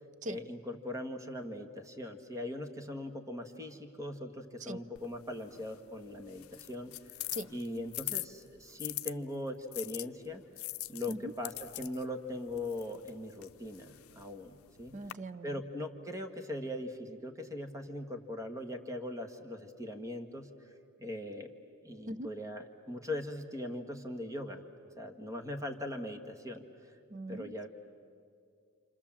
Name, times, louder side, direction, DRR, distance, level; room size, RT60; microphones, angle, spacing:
voice 1, 0.3-7.2 7.5-10.4 10.9-15.0 15.4-20.5 21.0-21.5 21.8-24.6 25.0-26.9 27.3-27.7, left 1 dB, 15° right, 6 dB, 1.5 m, -40 dB
sound 1, 5.0-9.1 9.7-15.1, left 18 dB, 75° left, 0.6 m, -43 dB
voice 2, 14.9-15.6 22.1-22.3 27.1-27.7, right 1 dB, 35° right, 14 dB, 0.6 m, -41 dB
28.5 x 28.0 x 7.4 m, 2.3 s
head